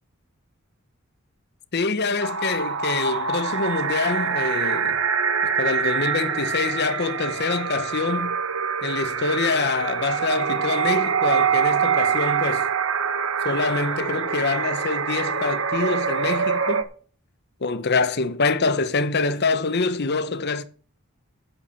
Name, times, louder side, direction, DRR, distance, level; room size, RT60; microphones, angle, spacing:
voice 1, 1.7-5.0 5.4-8.4 8.8-12.7 13.4-16.9 17.6-20.6, left 4 dB, 50° left, 0.9 m, -25 dB
sound 1, 2.2-16.8, right 6 dB, 65° right, 1.0 m, -25 dB
8.3 x 8.3 x 7.0 m
head